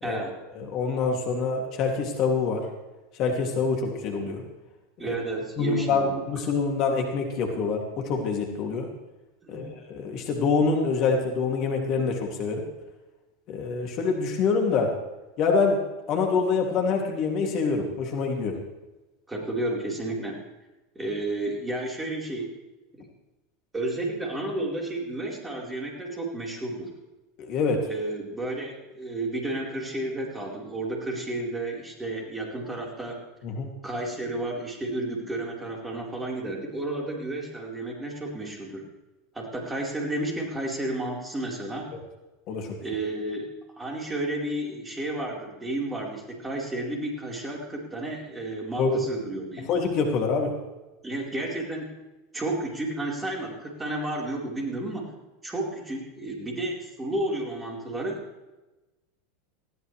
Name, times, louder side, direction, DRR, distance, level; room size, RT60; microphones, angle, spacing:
voice 1, 0.0-0.4 5.0-6.2 9.4-9.7 19.3-20.4 20.9-22.6 22.9-23.1 23.7-26.9 27.9-33.2 33.8-38.8 39.3-41.9 42.8-43.5 43.8-49.7 51.0-51.9 52.3-55.1 55.4-58.2, right 2 dB, 15° right, -1 dB, 4.4 m, -32 dB
voice 2, 0.5-2.7 3.1-4.4 5.0-5.2 5.6-8.9 9.5-12.7 13.5-14.9 15.4-15.8 16.1-18.6 27.4-27.9 33.4-33.7 41.9-42.0 42.5-42.7 48.8-49.0 49.7-50.6, left 4 dB, 45° left, 2 dB, 2.7 m, -26 dB
19.5 x 16.5 x 3.4 m, 1.1 s
figure-of-eight pair, 85°, 0 cm